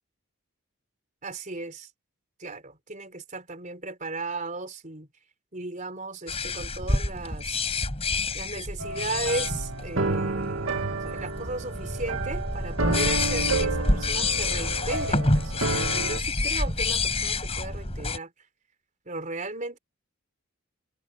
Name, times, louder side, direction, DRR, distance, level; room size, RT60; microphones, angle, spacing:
voice 1, 1.2-1.9 2.4-5.1 5.5-7.7 8.3-18.3 19.0-19.8, right 2 dB, 35° right, 4.5 m, -36 dB
sound 1, 6.3-18.2, left 3 dB, 25° left, 6.6 m, -28 dB
sound 2, 8.8-16.2, right 3 dB, 60° right, 2.1 m, -30 dB
head